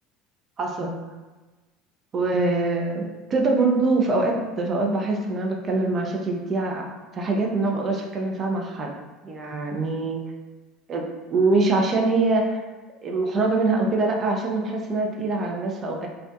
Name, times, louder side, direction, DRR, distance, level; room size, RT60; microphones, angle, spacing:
voice 1, 0.6-1.0 2.1-6.8 7.1-8.9 9.2-10.2 10.9-12.6 13.0-16.1, right 3 dB, 35° right, 0 dB, 0.4 m, -24 dB
2.4 x 2.3 x 2.2 m, 1.2 s
hypercardioid pair, 70°, 0 cm